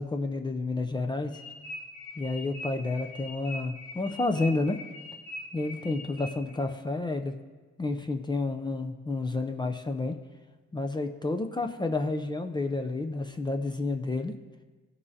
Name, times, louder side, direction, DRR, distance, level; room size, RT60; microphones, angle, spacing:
voice 1, 0.0-1.4 2.2-4.8 5.5-7.4 7.8-10.2 10.7-14.3, left 3 dB, 15° left, 5 dB, 0.4 m, -30 dB
sound 1, 1.3-6.6, left 2 dB, 85° left, 1.3 m, -42 dB
15.0 x 5.3 x 2.7 m, 1.4 s
cardioid pair, 90°, 30 cm